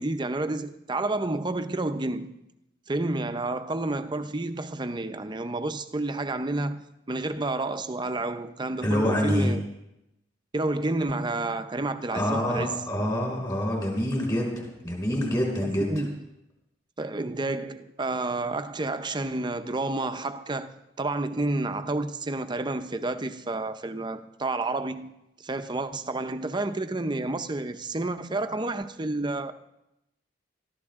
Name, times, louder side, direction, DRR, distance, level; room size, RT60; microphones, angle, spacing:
voice 1, 0.0-2.3 2.9-6.8 7.1-9.7 10.5-12.8 15.6-16.3 17.0-20.7 21.0-25.1 25.4-29.5, right 2 dB, 25° right, 0.7 m, -30 dB
voice 2, 8.8-9.6 12.1-15.9, equal, 20° left, 5.0 m, -26 dB
20.5 x 14.0 x 3.6 m
head